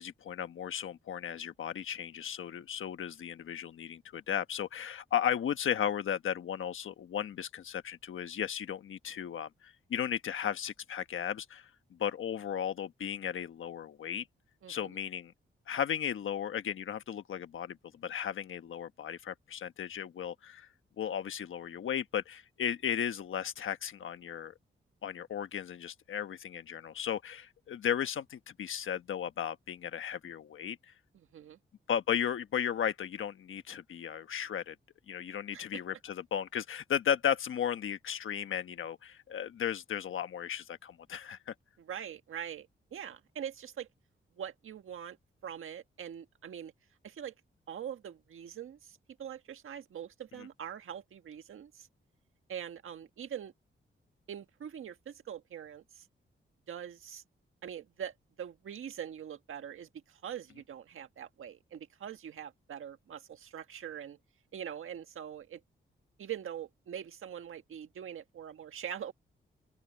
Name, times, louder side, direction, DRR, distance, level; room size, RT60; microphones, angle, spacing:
voice 1, 0.0-14.3 14.7-15.3 15.7-20.7 21.0-24.5 25.0-30.9 31.9-34.8 35.1-41.5 50.4-50.5, left 9 dB, 75° left, 1.2 m, -35 dB
voice 2, 14.6-15.0 31.1-31.6 35.5-35.6 41.8-43.9 44.3-45.2 45.4-46.7 47.0-47.3 47.7-51.9 52.5-53.5 54.3-56.1 56.7-57.2 57.6-64.2 64.5-65.6 66.2-69.1, right 9 dB, 80° right, 1.6 m, -43 dB
open air
wide cardioid pair, 160°, 21 cm